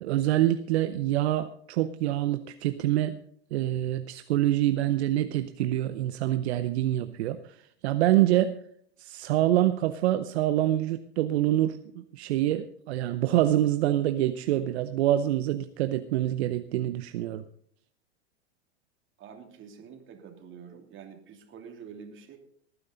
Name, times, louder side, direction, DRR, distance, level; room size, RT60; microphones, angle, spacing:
voice 1, 0.0-3.2 3.5-7.4 7.8-8.6 9.0-17.4, right 13 dB, 70° right, 11 dB, 0.8 m, -26 dB
voice 2, 19.2-22.4, right 6 dB, 35° right, 4 dB, 2.8 m, -47 dB
19.5 x 9.8 x 3.9 m, 0.64 s
hypercardioid pair, 105°, 34 cm